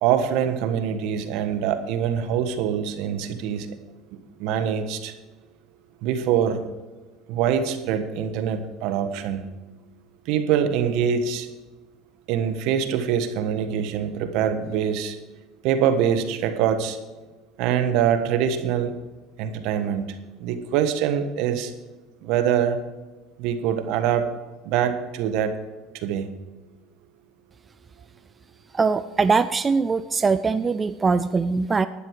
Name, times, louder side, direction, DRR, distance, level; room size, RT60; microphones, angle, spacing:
voice 1, 0.0-3.7 4.4-5.1 6.0-6.6 7.3-9.4 10.3-11.5 12.3-15.2 15.6-17.0 17.6-18.9 19.4-21.7 22.2-22.8 23.4-24.3 24.6-25.5 25.9-26.3, right 8 dB, 70° right, 9 dB, 1.3 m, -24 dB
voice 2, 28.7-31.9, right 4 dB, 25° right, 13 dB, 0.4 m, -22 dB
11.5 x 10.0 x 4.7 m, 1.2 s
supercardioid pair, 100°, 0 cm